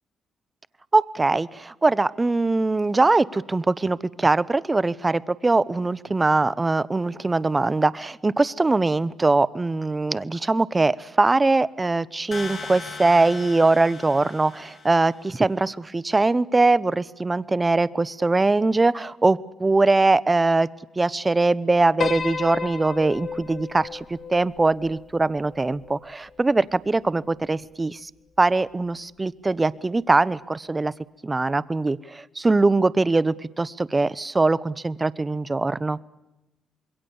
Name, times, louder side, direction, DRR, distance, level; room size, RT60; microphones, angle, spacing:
voice 1, 0.9-20.7 21.0-28.1 28.4-30.9 31.2-36.0, right 3 dB, 20° right, 19 dB, 0.7 m, -22 dB
sound 1, 12.3-15.2, left 4 dB, 30° left, 7.3 m, -38 dB
Piano, 22.0-26.4, left 6 dB, 45° left, 1.5 m, -33 dB
26.0 x 22.5 x 7.0 m, 0.99 s
cardioid pair, 90°, 0 cm